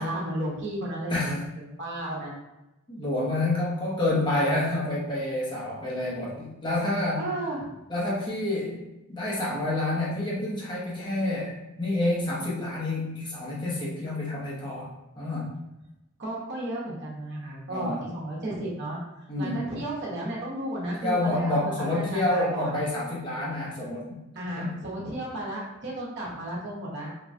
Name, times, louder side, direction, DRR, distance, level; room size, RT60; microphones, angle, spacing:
voice 1, 0.0-1.4 1.8-2.3 7.2-7.7 16.2-19.0 19.4-22.8 24.3-27.1, right 1 dB, 55° right, -5 dB, 0.9 m, -33 dB
voice 2, 2.9-7.3 7.9-14.9 15.2-15.5 17.7-18.0 19.3-19.6 21.0-24.2 24.5-24.8, left 1 dB, 20° left, -6 dB, 0.8 m, -28 dB
3.3 x 2.2 x 2.6 m, 0.97 s
head